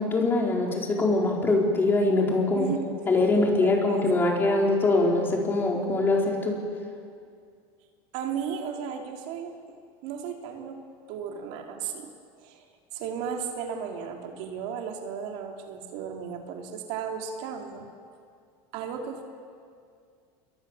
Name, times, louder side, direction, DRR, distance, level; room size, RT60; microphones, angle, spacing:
voice 1, 0.0-2.7 3.1-6.6, left 2 dB, 20° left, 0 dB, 4.4 m, -23 dB
voice 2, 2.5-2.9 3.6-4.0 8.1-9.6 10.0-10.8 11.1-12.1 12.4-12.6 12.9-17.9 18.7-19.2, right 7 dB, 60° right, 3 dB, 3.2 m, -35 dB
29.0 x 22.5 x 7.5 m, 2.2 s
supercardioid pair, 150°, 12 cm